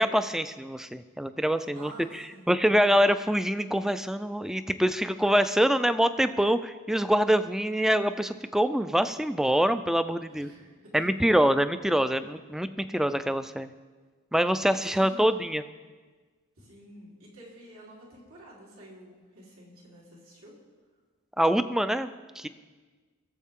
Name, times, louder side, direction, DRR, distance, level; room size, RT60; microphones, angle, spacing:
voice 1, 0.0-10.5 10.9-13.7 14.3-15.6 21.4-22.1 22.4-22.5, equal, ahead, 11 dB, 0.3 m, -25 dB
voice 2, 1.7-2.5 10.3-11.1 14.8-15.3 16.6-20.5, right 1 dB, 85° right, -6 dB, 3.7 m, -50 dB
19.5 x 7.3 x 3.7 m, 1.4 s
head